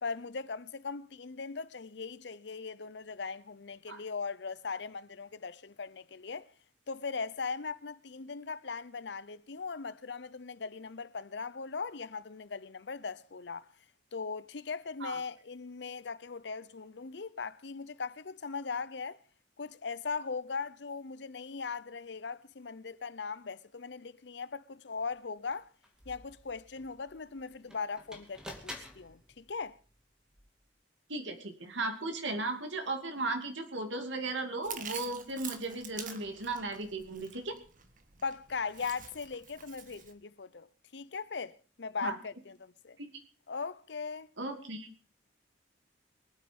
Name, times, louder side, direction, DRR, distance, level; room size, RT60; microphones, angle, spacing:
voice 1, 0.0-6.5 6.9-13.7 14.1-19.2 19.6-25.7 26.1-29.8 38.2-40.7 40.9-43.0 43.5-44.3, left 5 dB, 65° left, 0.7 m, -39 dB
sound 1, 25.0-25.1 25.5-30.7, left 1 dB, 5° right, 2.4 m, -51 dB
voice 2, 31.1-37.5 42.0-42.2 43.0-43.1 44.4-44.9, right 2 dB, 75° right, 2.6 m, -36 dB
Chewing mastication, 34.6-40.1, right 7 dB, 45° right, 1.6 m, -47 dB
23.5 x 8.8 x 5.3 m
head